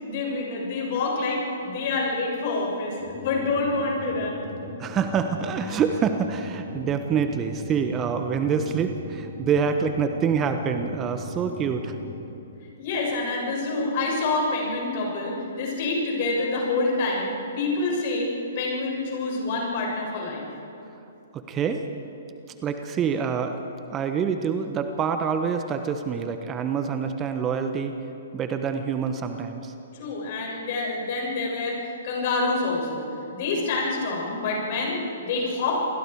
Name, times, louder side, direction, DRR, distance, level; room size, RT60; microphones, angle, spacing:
voice 1, 0.0-2.9 3.2-4.5 12.8-18.3 18.6-20.4 29.9-31.8 32.0-33.0 33.3-35.7, left 3 dB, 45° left, -2 dB, 7.0 m, -27 dB
sound 1, 3.0-12.2, left 3 dB, 30° left, 3.5 m, -39 dB
voice 2, 4.8-11.9 21.3-21.8 22.6-23.6 23.9-27.9 28.3-29.7, right 6 dB, 20° right, 7 dB, 1.2 m, -26 dB
29.0 x 21.5 x 4.8 m, 2.8 s
figure-of-eight pair, 120°, 0 cm